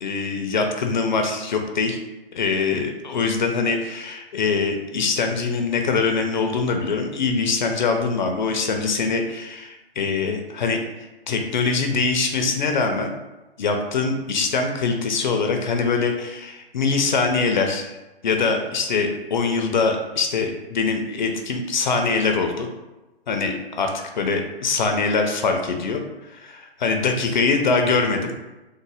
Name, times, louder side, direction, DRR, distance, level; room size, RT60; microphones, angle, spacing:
voice 1, 0.0-2.0 2.3-13.1 13.6-18.0 18.2-22.7 23.3-23.9 24.2-26.0 26.3-28.3, left 4 dB, 50° left, 4 dB, 0.4 m, -23 dB
3.6 x 2.0 x 3.3 m, 1.1 s
figure-of-eight pair, 135°, 31 cm